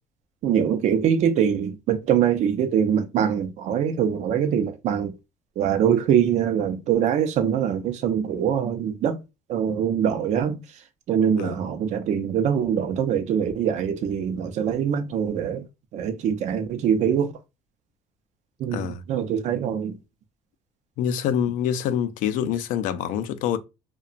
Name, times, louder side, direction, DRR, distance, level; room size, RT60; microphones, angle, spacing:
voice 1, 0.4-5.1 5.6-9.2 9.5-15.6 15.9-17.3 18.6-20.0, right 8 dB, 60° right, 0.5 m, -23 dB
voice 2, 21.0-23.6, left 9 dB, 80° left, 0.4 m, -25 dB
2.8 x 2.1 x 2.4 m
cardioid pair, 115°, 13 cm